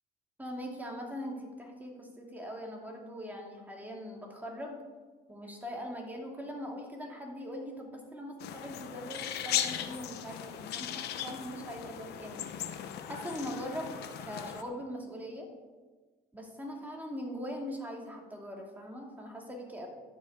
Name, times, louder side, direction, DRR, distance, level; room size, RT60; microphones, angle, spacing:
voice 1, 0.4-4.8 5.3-12.4 13.1-15.5 16.3-19.9, equal, 10° right, 0 dB, 2.7 m, -41 dB
sound 1, 8.4-14.6, left 10 dB, 75° left, 1.1 m, -37 dB
11.5 x 6.3 x 8.6 m, 1.3 s
cardioid pair, 110°, 17 cm